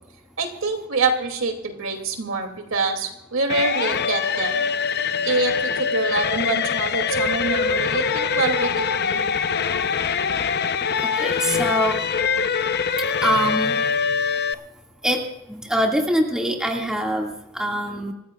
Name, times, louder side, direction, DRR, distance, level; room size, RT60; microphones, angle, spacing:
voice 1, 0.4-4.6 5.2-9.2, right 3 dB, 75° right, 4 dB, 2.6 m, -25 dB
sound 1, 3.5-14.5, left 6 dB, 50° left, 0.7 m, -23 dB
voice 2, 11.2-12.0 13.2-13.8 15.0-15.2 15.5-18.1, right 1 dB, 5° right, 0 dB, 2.0 m, -23 dB
27.0 x 15.5 x 2.4 m, 0.91 s
head